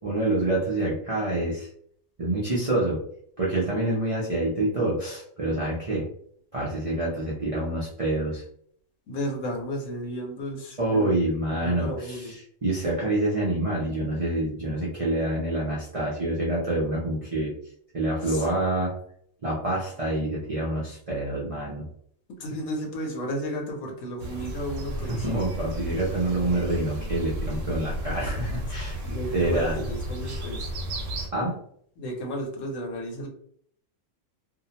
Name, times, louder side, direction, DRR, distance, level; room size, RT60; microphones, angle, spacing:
voice 1, 0.0-1.7 2.2-3.0 3.4-6.1 6.5-8.4 10.8-17.5 17.9-19.0 19.4-21.9 25.1-29.0 29.3-29.8 31.3-31.6, right 1 dB, 45° right, -6 dB, 0.4 m, -27 dB
voice 2, 9.1-11.1 11.5-12.3 18.2-18.5 22.4-25.3 29.0-30.7 32.0-33.3, equal, 75° left, 1 dB, 1.1 m, -33 dB
sound 1, 24.2-31.3, right 1 dB, 80° right, 1.1 m, -33 dB
2.7 x 2.0 x 2.7 m, 0.63 s
omnidirectional pair, 1.3 m